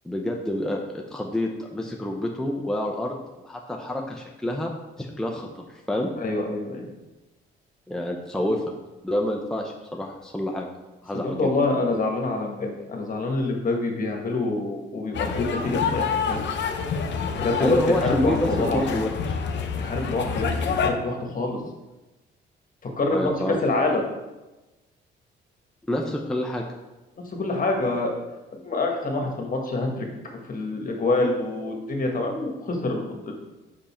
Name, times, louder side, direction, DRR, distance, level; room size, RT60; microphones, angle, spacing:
voice 1, 0.0-3.2 3.4-4.7 5.0-6.1 7.9-8.6 9.0-10.7 11.0-11.5 17.6-19.4 23.1-23.6 25.9-26.6, left 1 dB, 5° left, 0 dB, 0.7 m, -28 dB
voice 2, 6.2-6.9 11.1-16.4 17.3-18.8 19.7-21.6 22.8-24.0 27.4-28.2 28.6-30.1 30.5-33.3, left 2 dB, 45° left, 1 dB, 1.5 m, -26 dB
sound 1, 15.1-20.9, left 6 dB, 65° left, 0.7 m, -27 dB
5.3 x 5.1 x 4.4 m, 1.1 s
cardioid pair, 90°, 20 cm